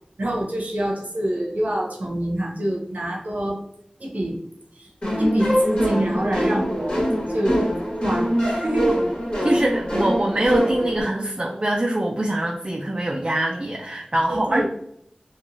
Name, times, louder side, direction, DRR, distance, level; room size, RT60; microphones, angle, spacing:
voice 1, 0.2-3.6 4.0-4.4 4.8-4.9 5.2-7.0 7.3-7.6 8.0-8.9 14.3-14.7, right 1 dB, 75° right, -2 dB, 0.8 m, -26 dB
sound 1, 5.0-11.0, equal, 45° left, 1.3 m, -23 dB
voice 2, 9.4-14.7, right 1 dB, 35° right, 0 dB, 0.4 m, -23 dB
3.0 x 2.3 x 2.6 m, 0.73 s
wide cardioid pair, 40°, 3 cm